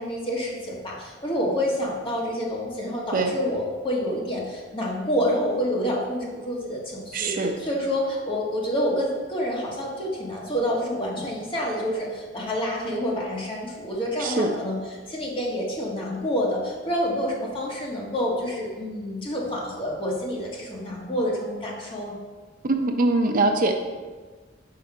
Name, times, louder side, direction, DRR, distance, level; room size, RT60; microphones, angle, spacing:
voice 1, 0.0-7.3 7.6-14.7 15.1-22.1, equal, 30° left, -3 dB, 1.4 m, -28 dB
voice 2, 7.1-7.5 14.2-14.5 22.6-23.8, right 2 dB, 45° right, 4 dB, 0.5 m, -22 dB
5.8 x 5.1 x 4.8 m, 1.4 s
head